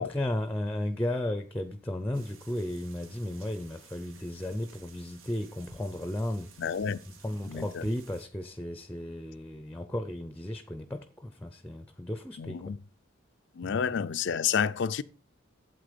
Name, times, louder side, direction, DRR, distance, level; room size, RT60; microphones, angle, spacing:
voice 1, 0.0-6.5 7.1-12.7 13.6-13.8, left 1 dB, 10° left, 0.6 m, -34 dB
sound 1, 2.1-8.3, right 6 dB, 80° right, 1.9 m, -56 dB
voice 2, 6.6-7.0 7.5-7.9 12.4-12.8 13.6-15.0, left 7 dB, 60° left, 0.4 m, -30 dB
12.0 x 8.3 x 5.2 m
head